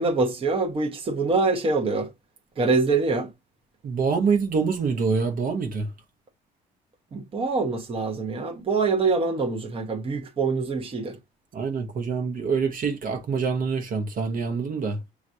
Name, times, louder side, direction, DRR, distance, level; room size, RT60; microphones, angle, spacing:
voice 1, 0.0-2.1 2.6-3.3 7.1-11.2, right 3 dB, 35° right, 1.1 m, -24 dB
voice 2, 3.8-5.9 11.5-15.0, right 5 dB, 55° right, 1.2 m, -25 dB
6.2 x 3.1 x 2.7 m
cardioid pair, 110°, 17 cm